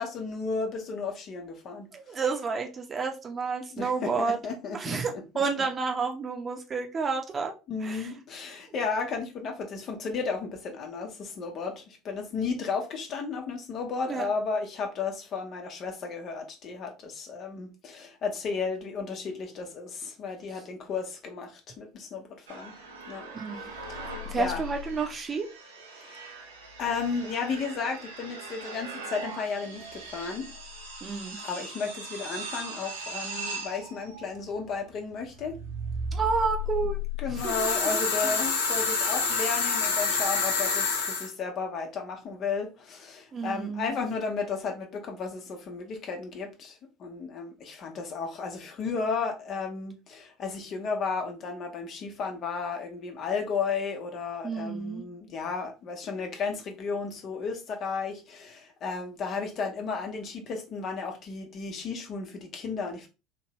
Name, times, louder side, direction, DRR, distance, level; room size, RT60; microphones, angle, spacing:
voice 1, 0.0-2.2 3.7-5.0 5.3-5.7 7.7-22.8 23.1-23.3 23.6-23.7 23.9-24.6 25.9-26.4 26.8-30.5 31.4-35.6 37.2-63.1, left 5 dB, 50° left, 1.0 m, -34 dB
voice 2, 1.9-4.4 4.7-7.5 7.8-8.1 14.1-14.2 23.3-23.6 24.3-25.5 31.0-31.4 36.1-37.0 37.3-37.9 43.3-44.0 54.4-55.0, right 5 dB, 35° right, 0.9 m, -30 dB
sound 1, 22.5-37.9, left 1 dB, 85° right, 0.9 m, -38 dB
sound 2, 37.4-41.3, left 4 dB, 80° left, 0.7 m, -27 dB
3.1 x 2.9 x 3.0 m
hypercardioid pair, 65°, 0 cm